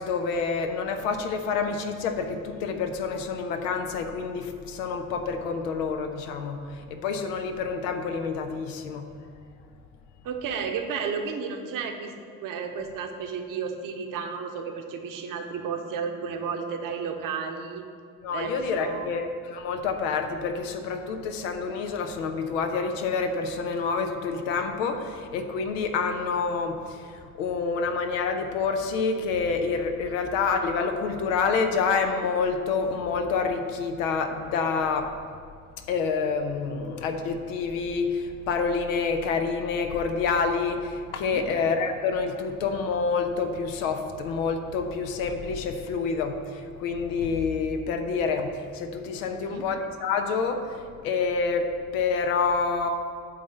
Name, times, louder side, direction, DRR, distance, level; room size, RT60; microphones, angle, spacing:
voice 1, 0.0-9.1 18.2-35.1 35.9-52.9, left 5 dB, 65° left, 6 dB, 0.8 m, -28 dB
voice 2, 10.2-12.1 12.4-17.8 18.3-19.2 41.2-41.5 49.3-49.6, right 6 dB, 50° right, 4 dB, 1.0 m, -33 dB
8.5 x 4.2 x 6.8 m, 2.2 s
figure-of-eight pair, 45°, 42 cm